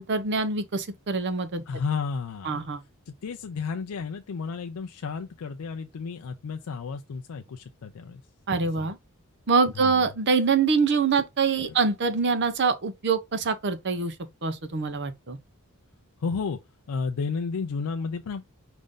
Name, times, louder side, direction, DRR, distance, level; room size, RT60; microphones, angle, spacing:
voice 1, 0.0-1.6 2.4-2.8 8.5-9.0 9.5-14.1 14.4-15.4, right 4 dB, 50° right, 0.7 m, -25 dB
voice 2, 1.7-2.7 3.1-8.2 8.8-8.9 9.8-10.0 16.2-16.6 16.9-18.4, left 5 dB, 75° left, 0.4 m, -32 dB
5.1 x 2.6 x 3.6 m
head